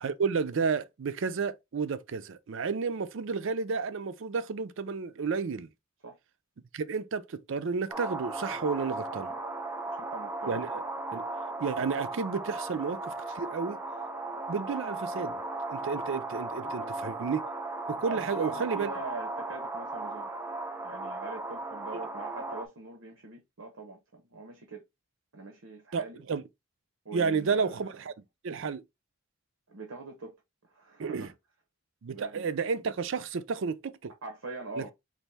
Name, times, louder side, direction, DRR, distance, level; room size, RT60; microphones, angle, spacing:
voice 1, 0.0-5.7 6.7-9.3 10.5-10.8 11.1-11.3 11.6-13.8 14.5-15.4 15.7-17.5 17.9-18.9 25.9-26.4 27.1-28.1 28.4-28.8 31.0-31.3 32.0-34.1 34.8-34.9, right 5 dB, 65° right, 0.5 m, -31 dB
sound 1, 7.9-22.7, right 2 dB, 10° right, 0.4 m, -36 dB
voice 2, 9.1-9.4 9.9-10.6 16.6-16.9 18.0-20.3 20.8-24.8 25.3-26.2 27.0-28.1 29.7-30.3 30.6-31.3 32.1-32.5 34.2-34.9, right 3 dB, 85° right, 0.8 m, -43 dB
4.1 x 2.6 x 3.3 m
head